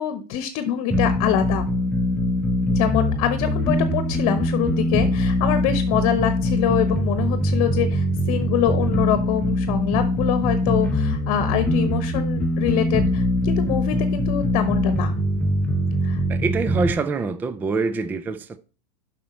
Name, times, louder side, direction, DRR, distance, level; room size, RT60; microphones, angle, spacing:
voice 1, 0.0-1.6 2.7-15.1 16.0-16.2, left 10 dB, 45° left, 1.0 m, -25 dB
sound 1, 0.9-16.9, left 1 dB, 5° left, 0.9 m, -22 dB
voice 2, 16.3-18.6, right 4 dB, 10° right, 0.3 m, -25 dB
7.4 x 5.8 x 4.3 m
supercardioid pair, 130°, 21 cm